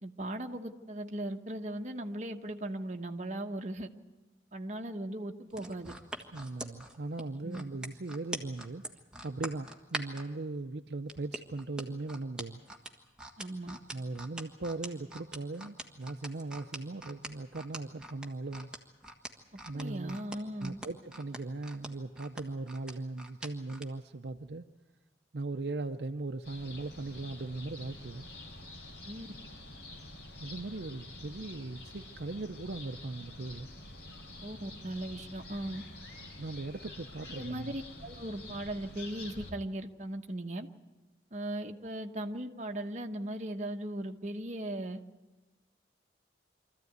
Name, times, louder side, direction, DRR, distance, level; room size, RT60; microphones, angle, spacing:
voice 1, 0.0-3.9 4.5-5.9 7.4-7.6 13.4-13.8 19.7-20.8 29.0-29.3 34.4-35.8 37.4-40.7 41.3-45.0, right 1 dB, 40° right, 5 dB, 1.1 m, -38 dB
sound 1, 5.5-10.3 11.1-23.9 24.3-24.5, right 1 dB, 5° right, 1.5 m, -43 dB
voice 2, 6.3-8.8 9.2-12.6 13.9-18.7 19.7-20.2 20.6-24.7 25.3-28.3 30.4-33.7 36.4-37.7, right 2 dB, 70° right, 6 dB, 0.7 m, -39 dB
sound 2, 26.4-39.5, left 2 dB, 80° left, 4.4 m, -48 dB
24.5 x 14.5 x 9.4 m, 1.2 s
head